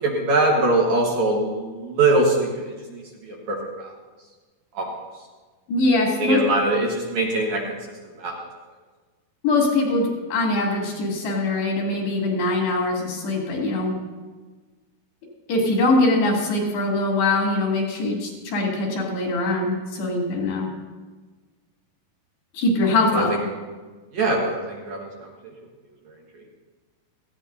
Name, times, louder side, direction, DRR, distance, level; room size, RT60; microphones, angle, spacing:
voice 1, 0.0-3.9 4.7-4.9 6.2-7.8 8.2-8.4 23.1-23.2 24.1-25.1 25.4-25.5, right 2 dB, 55° right, -1 dB, 2.3 m, -22 dB
voice 2, 5.7-6.4 9.4-14.0 15.5-20.7 22.5-23.3, left 2 dB, 90° left, -2 dB, 4.9 m, -22 dB
18.5 x 15.5 x 2.7 m, 1.4 s
omnidirectional pair, 4.5 m